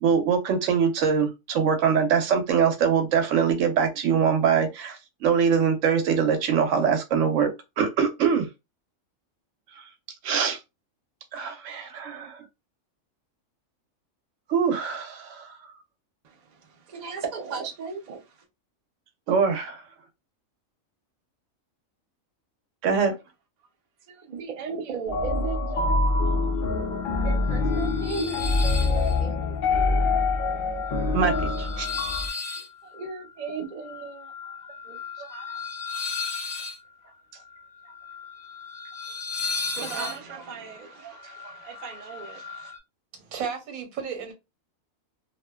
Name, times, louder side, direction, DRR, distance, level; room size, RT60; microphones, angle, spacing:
voice 1, 0.0-8.5 10.2-10.6 11.3-12.4 14.5-15.5 19.3-19.8 22.8-23.1 31.1-31.9, right 6 dB, 65° right, 0.9 m, -23 dB
voice 2, 16.2-18.4 24.1-30.3 32.4-35.6 37.0-37.4 37.8-37.9 39.7-42.7, right 5 dB, 50° right, 0.5 m, -38 dB
sound 1, 25.1-32.3, left 3 dB, 85° left, 0.4 m, -25 dB
sound 2, 26.6-42.8, left 5 dB, 60° left, 0.8 m, -36 dB
voice 3, 43.1-44.3, right 6 dB, 85° right, 1.2 m, -33 dB
2.6 x 2.1 x 2.2 m
omnidirectional pair, 1.4 m